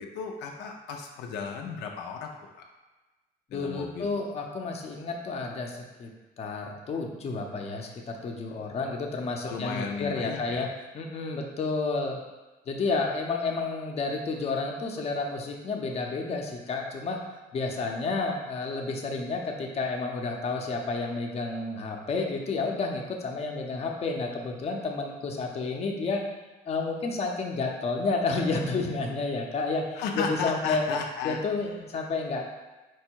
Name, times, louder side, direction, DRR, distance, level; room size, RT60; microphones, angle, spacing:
voice 1, 0.0-2.6 3.5-4.1 9.5-10.7 29.9-31.8, left 5 dB, 85° left, 1 dB, 0.5 m, -35 dB
voice 2, 3.5-6.1 6.4-10.7 10.9-12.2 12.7-17.2 17.5-26.2 26.6-30.9 31.2-32.5, left 3 dB, 40° left, 1 dB, 0.7 m, -30 dB
4.6 x 2.2 x 4.5 m, 1.2 s
cardioid pair, 110°, 17 cm